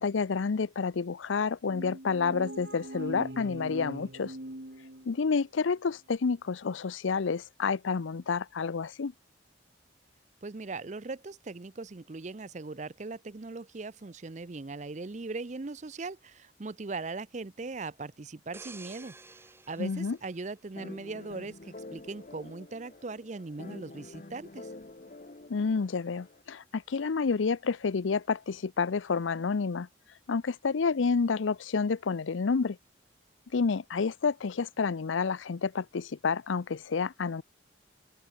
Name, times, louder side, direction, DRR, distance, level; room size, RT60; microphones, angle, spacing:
voice 1, 0.0-4.4 5.1-9.1 19.8-20.2 25.5-29.9 30.3-32.8 33.5-37.4, left 5 dB, 85° left, 0.6 m, -29 dB
sound 1, 1.7-5.4, right 1 dB, 60° right, 2.5 m, -41 dB
voice 2, 10.4-19.1 19.7-24.7, right 3 dB, 40° right, 0.6 m, -39 dB
sound 2, 18.5-21.2 21.7-21.9, right 3 dB, 15° right, 2.3 m, -51 dB
sound 3, 20.7-26.4, left 2 dB, 45° left, 0.9 m, -47 dB
open air
head